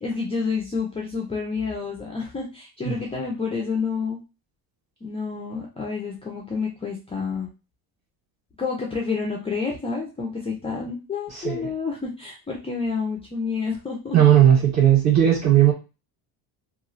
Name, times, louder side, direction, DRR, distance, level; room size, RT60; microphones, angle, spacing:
voice 1, 0.0-4.2 5.0-7.5 8.6-14.2, left 5 dB, 15° left, -2 dB, 0.4 m, -29 dB
voice 2, 11.3-11.7 14.1-15.7, right 10 dB, 40° right, -4 dB, 1.5 m, -17 dB
3.0 x 2.4 x 2.5 m, 0.29 s
cardioid pair, 150°, 42 cm